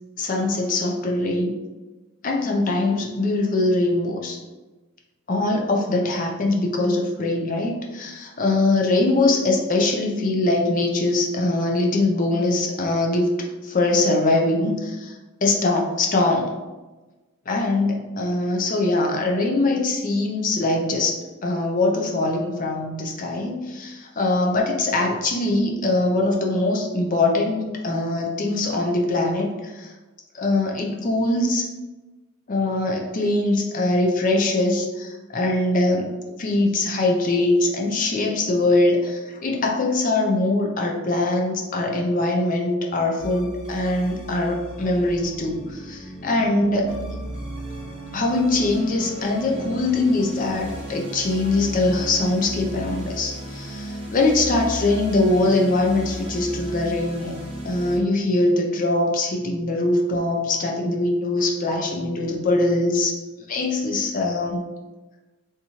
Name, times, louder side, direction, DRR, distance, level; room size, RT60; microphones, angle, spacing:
voice 1, 0.2-1.5 2.2-4.4 5.3-13.3 13.6-16.5 17.5-29.9 30.3-31.7 32.5-36.1 36.4-46.9 48.1-57.4 57.6-63.2 63.5-64.6, left 2 dB, 35° left, 1 dB, 0.4 m, -22 dB
sound 1, 43.2-58.0, right 1 dB, 25° right, 1.1 m, -35 dB
3.5 x 2.9 x 2.7 m, 1.2 s
head